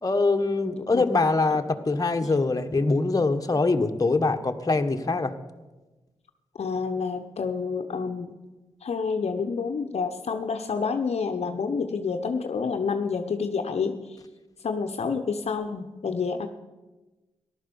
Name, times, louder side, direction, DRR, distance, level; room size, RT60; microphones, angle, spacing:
voice 1, 0.0-5.3, left 3 dB, 30° left, 6 dB, 1.4 m, -23 dB
voice 2, 6.6-8.3 8.8-14.0 14.6-16.5, left 5 dB, 65° left, 6 dB, 0.9 m, -28 dB
14.0 x 11.5 x 7.0 m, 1.2 s
supercardioid pair, 40°, 12 cm